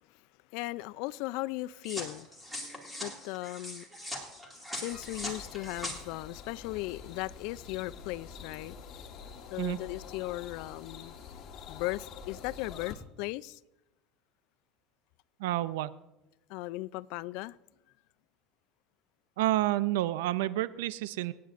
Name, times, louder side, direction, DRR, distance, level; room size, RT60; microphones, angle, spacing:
voice 1, 0.5-2.3 3.0-3.9 4.7-8.8 9.5-11.2 11.7-13.6 16.5-17.6, left 19 dB, 65° left, 0.3 m, -37 dB
sound 1, 1.8-6.0, left 1 dB, 5° right, 2.3 m, -41 dB
sound 2, 4.9-12.9, left 6 dB, 40° left, 1.4 m, -47 dB
voice 2, 15.4-15.9 19.4-21.3, right 15 dB, 90° right, 0.4 m, -29 dB
26.0 x 9.4 x 2.5 m
supercardioid pair, 140°, 0 cm